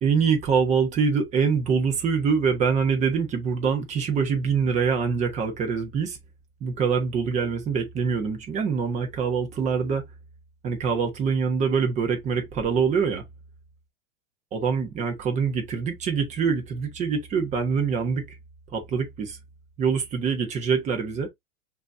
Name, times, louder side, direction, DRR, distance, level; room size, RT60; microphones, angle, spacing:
voice 1, 0.0-6.2 6.6-10.0 10.6-13.2 14.5-18.2 18.7-19.4 19.8-21.3, right 6 dB, 20° right, 1.1 m, -24 dB
5.9 x 2.9 x 2.6 m
supercardioid pair, 165°, 36 cm